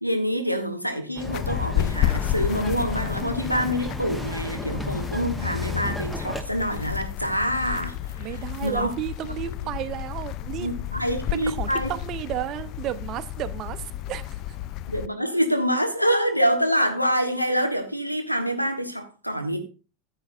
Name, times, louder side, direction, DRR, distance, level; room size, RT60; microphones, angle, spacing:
voice 1, 0.0-8.0 8.3-8.9 10.6-11.9 14.9-19.6, equal, 90° left, 1.1 m, -26 dB
Bird vocalization bird call bird song, 1.2-6.4, left 1 dB, 5° left, 1.1 m, -34 dB
sound 1, 1.3-15.1, left 13 dB, 45° left, 0.3 m, -31 dB
voice 2, 8.2-10.7 11.3-14.6, right 13 dB, 40° right, 0.7 m, -33 dB
14.0 x 7.2 x 2.5 m
figure-of-eight pair, 80°, 0 cm